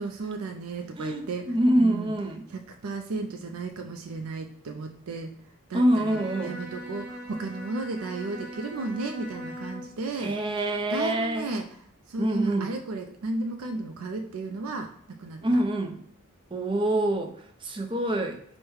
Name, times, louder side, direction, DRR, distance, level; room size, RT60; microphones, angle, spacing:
voice 1, 0.0-2.1 2.5-5.3 5.7-11.7 12.1-15.4, right 3 dB, 80° right, 4 dB, 0.4 m, -34 dB
voice 2, 1.0-2.4 5.7-6.6 10.2-11.5 12.2-12.7 15.4-16.0 16.5-17.3 17.6-18.4, right 1 dB, 25° right, 5 dB, 0.4 m, -25 dB
Bowed string instrument, 5.8-10.0, equal, 5° right, 0.8 m, -40 dB
4.6 x 2.1 x 4.7 m, 0.67 s
head